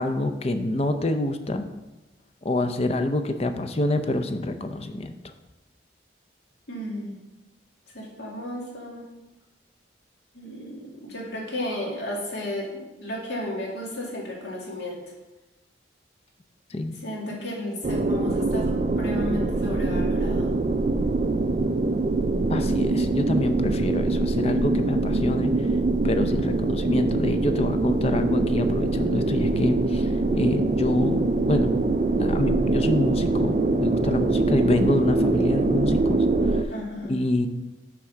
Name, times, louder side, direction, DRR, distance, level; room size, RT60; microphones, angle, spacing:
voice 1, 0.0-1.6 2.4-5.2 16.7-17.0 22.5-25.7 26.0-36.7 37.1-37.5, left 1 dB, 35° left, 8 dB, 0.5 m, -26 dB
voice 2, 6.7-7.1 7.9-9.0 10.3-15.0 17.0-20.5 36.7-37.1, left 1 dB, 70° left, -3 dB, 2.2 m, -33 dB
sound 1, 17.8-36.6, right 2 dB, 35° right, 0.3 m, -23 dB
5.9 x 4.8 x 6.4 m, 1.0 s
head